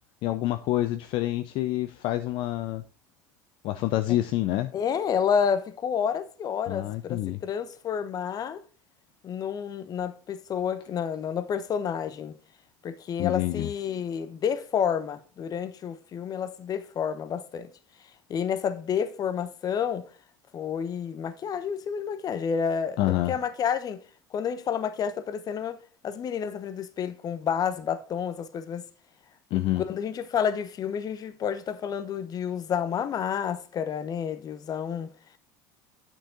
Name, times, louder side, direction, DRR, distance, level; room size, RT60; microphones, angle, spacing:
voice 1, 0.2-2.8 3.6-4.7 6.7-7.4 13.2-13.7 23.0-23.3 29.5-29.8, left 15 dB, 55° left, 0.6 m, -27 dB
voice 2, 4.7-8.6 9.2-12.4 12.8-17.7 18.3-20.0 20.5-24.0 24.3-28.8 29.8-35.1, left 7 dB, 40° left, 1.0 m, -30 dB
9.0 x 6.2 x 3.8 m
hypercardioid pair, 75°, 10 cm